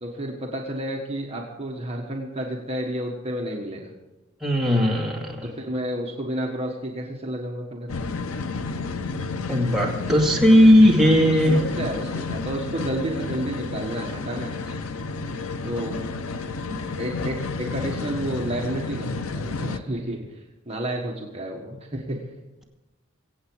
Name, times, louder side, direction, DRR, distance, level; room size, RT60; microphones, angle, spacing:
voice 1, 0.0-3.9 5.4-7.9 11.2-14.6 15.6-16.1 16.6-22.2, right 1 dB, 30° right, -1 dB, 1.5 m, -31 dB
voice 2, 4.4-5.5 9.5-11.6, equal, ahead, -3 dB, 2.3 m, -17 dB
sound 1, 7.9-19.8, left 3 dB, 75° left, 0.7 m, -31 dB
23.5 x 8.5 x 4.8 m, 1.0 s
head